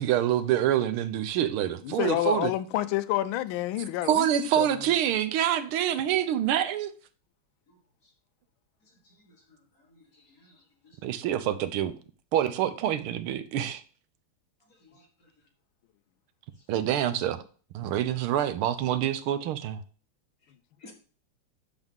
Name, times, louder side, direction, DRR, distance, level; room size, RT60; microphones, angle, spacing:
voice 1, 0.0-2.5 4.1-6.9 11.0-11.9 12.3-13.8 16.7-17.4 17.7-19.8, right 11 dB, 80° right, 1.6 m, -26 dB
voice 2, 1.8-4.8, left 14 dB, 75° left, 1.4 m, -29 dB
voice 3, 10.0-11.0 14.8-15.1 20.8-20.9, left 2 dB, 45° left, 1.9 m, -54 dB
12.0 x 4.0 x 3.6 m
omnidirectional pair, 2.4 m